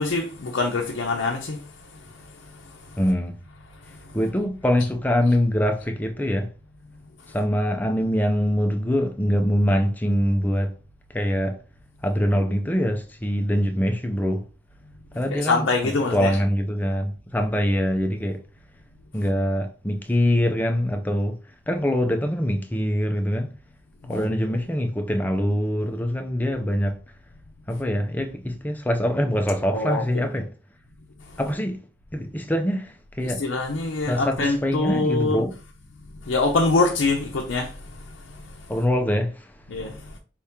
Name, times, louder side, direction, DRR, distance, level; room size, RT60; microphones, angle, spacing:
voice 1, 0.0-1.6 15.3-16.4 24.1-24.6 29.7-30.3 33.2-35.4 36.3-37.7 39.7-39.9, left 3 dB, 75° left, 0.6 m, -24 dB
voice 2, 3.0-3.4 4.1-6.5 7.3-10.7 11.1-11.6 12.0-14.4 15.1-18.4 19.1-21.4 21.7-23.5 24.1-26.9 27.7-30.5 31.4-31.8 32.1-33.4 34.1-35.5 38.7-39.5, equal, 10° left, 0.5 m, -24 dB
4.6 x 2.9 x 3.5 m
head